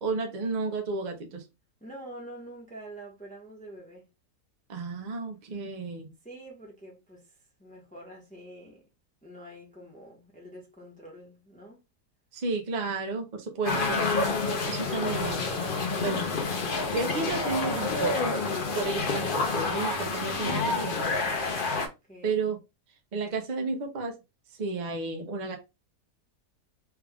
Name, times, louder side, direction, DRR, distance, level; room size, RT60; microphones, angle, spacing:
voice 1, 0.0-1.4 4.7-6.1 12.3-14.1 14.7-15.5 16.0-16.4 16.9-18.3 18.7-21.1 22.2-22.6 23.1-24.2 24.6-25.6, right 3 dB, 45° right, 0.5 m, -32 dB
voice 2, 1.8-4.1 6.2-7.3 7.6-8.8 9.2-11.8 16.1-16.5 22.1-22.4, right 1 dB, 5° left, 0.9 m, -46 dB
sound 1, 13.6-21.9, left 3 dB, 60° left, 0.5 m, -28 dB
3.5 x 2.4 x 3.4 m
omnidirectional pair, 1.7 m